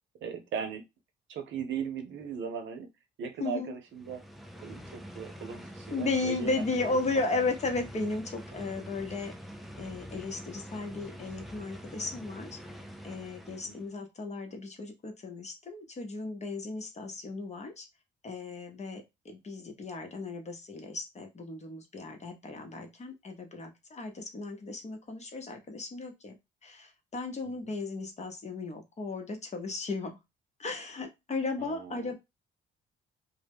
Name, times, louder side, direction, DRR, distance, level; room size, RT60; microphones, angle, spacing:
voice 1, 0.2-0.8 1.3-2.9 3.2-4.2 4.6-6.6 7.3-7.4 13.6-13.8 27.6-27.7 31.6-32.2, right 7 dB, 70° right, 6 dB, 0.7 m, -38 dB
voice 2, 3.4-3.7 5.9-9.3 9.8-12.7 13.0-17.9 18.2-26.4 26.6-30.2 30.6-32.2, left 3 dB, 35° left, 4 dB, 0.8 m, -35 dB
sound 1, 3.9-13.9, equal, ahead, 0.4 m, -45 dB
2.2 x 2.1 x 3.4 m, 0.22 s
cardioid pair, 90°, 20 cm